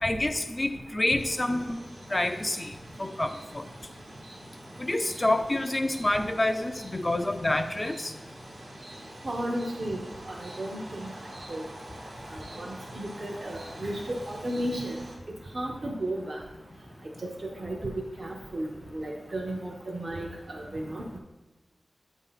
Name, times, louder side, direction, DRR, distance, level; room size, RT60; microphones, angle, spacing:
voice 1, 0.0-1.8 2.1-3.7 4.8-8.1, left 1 dB, 30° left, 6 dB, 0.3 m, -28 dB
sound 1, 1.2-15.2, right 1 dB, 90° right, 1.1 m, -46 dB
voice 2, 9.2-10.0 10.3-11.1 11.5-11.6 12.3-15.0 15.5-16.4 17.2-21.2, right 1 dB, 55° right, 0 dB, 0.6 m, -34 dB
7.9 x 2.7 x 5.6 m, 1.1 s
wide cardioid pair, 80°, 0 cm